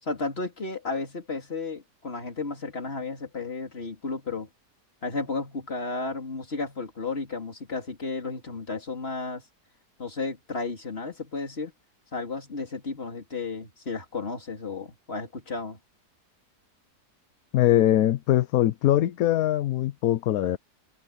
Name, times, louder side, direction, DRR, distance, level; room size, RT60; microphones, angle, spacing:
voice 1, 0.0-4.5 5.0-9.4 10.0-11.7 12.1-15.8, left 3 dB, 35° left, 3.2 m, -33 dB
voice 2, 17.5-20.6, left 13 dB, 65° left, 1.0 m, -22 dB
omnidirectional pair, 1.8 m